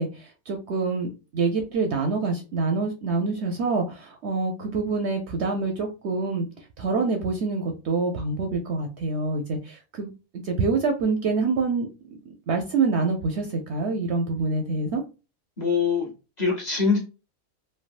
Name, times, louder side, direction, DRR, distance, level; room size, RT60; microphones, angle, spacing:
voice 1, 0.0-11.9 12.3-15.0, right 4 dB, 65° right, 3 dB, 0.7 m, -26 dB
voice 2, 15.6-16.1 16.4-17.0, left 5 dB, 35° left, -3 dB, 1.0 m, -23 dB
3.3 x 2.2 x 2.4 m, 0.30 s
omnidirectional pair, 1.4 m